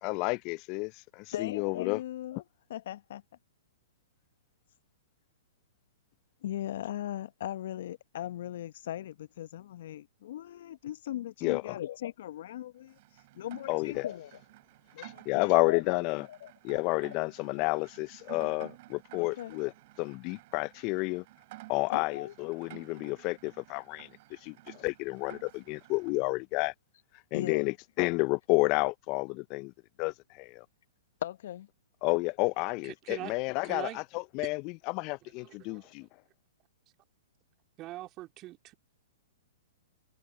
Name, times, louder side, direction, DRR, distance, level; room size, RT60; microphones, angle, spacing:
voice 1, 0.0-2.0 11.4-11.8 13.7-14.0 15.0-16.3 16.6-19.7 20.0-21.2 21.7-26.7 27.3-29.7 30.0-30.7 32.0-34.6 34.9-36.1, left 27 dB, 40° left, 0.4 m, -31 dB
voice 2, 1.3-2.4 2.7-3.2 6.4-13.0 13.3-14.3 14.9-16.0 16.3-16.5 19.2-19.6 21.9-22.3 27.3-27.7 31.2-31.7, left 12 dB, 60° left, 1.0 m, -38 dB
Rain, 12.9-26.2, right 20 dB, 50° right, 3.4 m, -53 dB
voice 3, 32.8-33.3 33.6-34.0 35.4-35.9 37.8-38.7, right 16 dB, 30° right, 2.2 m, -42 dB
figure-of-eight pair, 115°, 0 cm